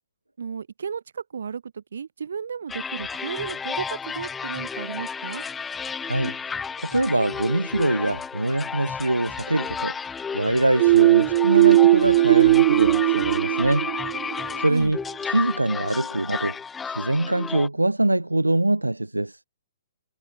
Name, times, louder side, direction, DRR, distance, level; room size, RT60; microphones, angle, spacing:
voice 1, 0.4-5.4 14.7-14.9, right 6 dB, 60° right, 5.7 m, -33 dB
sound 1, 2.7-17.7, left 6 dB, 10° left, 3.2 m, -32 dB
voice 2, 6.0-6.3 6.8-9.9 10.3-13.9 14.6-15.0 15.2-16.6 16.8-19.4, right 2 dB, 80° right, 1.7 m, -23 dB
sound 2, 10.8-14.5, right 17 dB, 40° right, 1.0 m, -18 dB
figure-of-eight pair, 120°, 0 cm